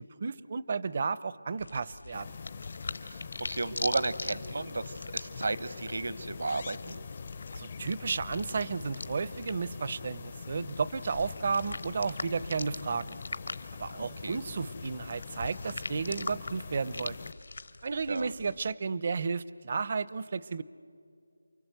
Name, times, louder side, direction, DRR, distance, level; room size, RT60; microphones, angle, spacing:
voice 1, 0.2-2.3 7.5-13.2 13.8-17.2 17.8-20.6, right 5 dB, 35° right, 17 dB, 0.5 m, -33 dB
sound 1, 1.6-18.7, left 3 dB, 65° left, 1.1 m, -43 dB
sound 2, 2.1-17.3, left 5 dB, 30° left, 0.5 m, -44 dB
voice 2, 3.5-7.0 14.0-14.4 18.1-18.3, right 3 dB, 70° right, 14 dB, 0.9 m, -34 dB
28.5 x 23.0 x 8.0 m, 2.4 s
figure-of-eight pair, 175°, 0 cm